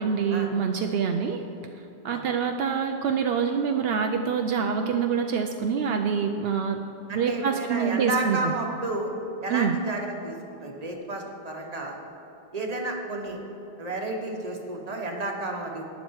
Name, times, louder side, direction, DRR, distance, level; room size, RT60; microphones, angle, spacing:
voice 1, 0.0-1.4 2.0-8.5 9.5-9.8, right 6 dB, 75° right, 5 dB, 0.8 m, -26 dB
voice 2, 7.1-9.1 9.4-10.3 10.6-11.9 12.5-13.4 13.8-15.8, right 2 dB, 40° right, 1 dB, 1.3 m, -31 dB
11.5 x 9.5 x 4.7 m, 2.9 s
omnidirectional pair, 1.0 m